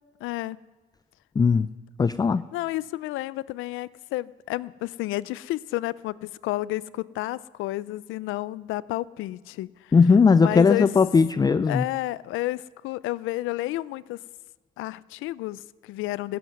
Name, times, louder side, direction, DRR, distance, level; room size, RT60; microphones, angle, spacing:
voice 1, 0.2-0.6 2.5-10.0 10.4-10.9 11.7-14.2 14.8-16.4, left 17 dB, 90° left, 20 dB, 0.4 m, -31 dB
voice 2, 1.4-1.7 2.0-2.4 9.9-11.8, left 5 dB, 20° left, 14 dB, 0.3 m, -18 dB
14.5 x 7.7 x 9.5 m, 1.4 s
cardioid pair, 90°, 20 cm